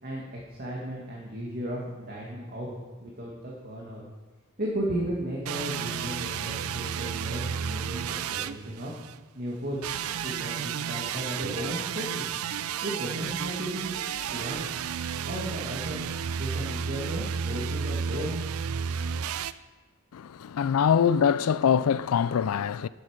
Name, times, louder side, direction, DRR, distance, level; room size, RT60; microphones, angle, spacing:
voice 1, 0.0-2.7 3.0-4.0 4.6-8.9 9.3-9.9 10.2-12.3 12.8-14.0 14.3-14.7 15.3-16.0 16.4-18.3, right 1 dB, 45° right, 1.9 m, -35 dB
sound 1, 5.4-9.2 9.8-19.5, right 7 dB, 80° right, 0.4 m, -32 dB
voice 2, 20.1-22.9, left 7 dB, 80° left, 0.4 m, -24 dB
12.0 x 8.2 x 5.1 m
head